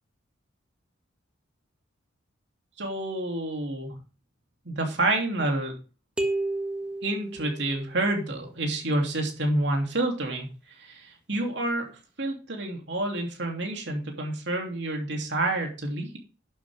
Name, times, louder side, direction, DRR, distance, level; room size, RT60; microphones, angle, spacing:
voice 1, 2.8-4.0 4.6-5.8 7.0-11.9 12.2-16.2, right 2 dB, 65° right, 2 dB, 3.0 m, -28 dB
sound 1, 6.2-8.1, right 2 dB, 5° right, 1.4 m, -31 dB
11.5 x 7.9 x 3.5 m, 0.34 s
head